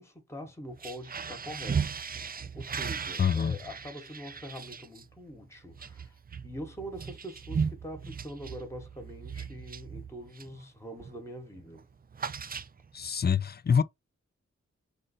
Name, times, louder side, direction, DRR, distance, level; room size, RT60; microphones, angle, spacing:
voice 1, 0.0-2.0 2.5-11.9, equal, 10° left, 1.2 m, -44 dB
sound 1, 0.7-10.6 11.0-11.3 11.5-13.1, right 6 dB, 30° right, 0.4 m, -37 dB
voice 2, 3.2-3.6 12.9-13.8, left 7 dB, 35° left, 0.4 m, -25 dB
3.8 x 2.6 x 4.0 m
cardioid pair, 45°, 30 cm